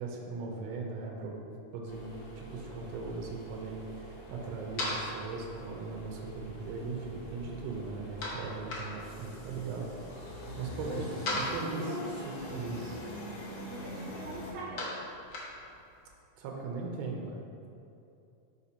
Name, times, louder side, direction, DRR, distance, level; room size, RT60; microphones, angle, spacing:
voice 1, 0.0-10.0 10.6-11.1 11.3-11.9 12.5-13.0 16.4-17.4, right 4 dB, 85° right, 0 dB, 1.5 m, -39 dB
sound 1, 1.9-14.5, equal, 60° left, 1.6 m, -44 dB
sound 2, 4.1-16.1, left 1 dB, 80° left, 1.1 m, -42 dB
voice 2, 10.8-12.1 13.7-15.0, right 1 dB, 70° right, -6 dB, 0.9 m, -42 dB
5.6 x 4.9 x 4.3 m, 2.7 s
omnidirectional pair, 3.9 m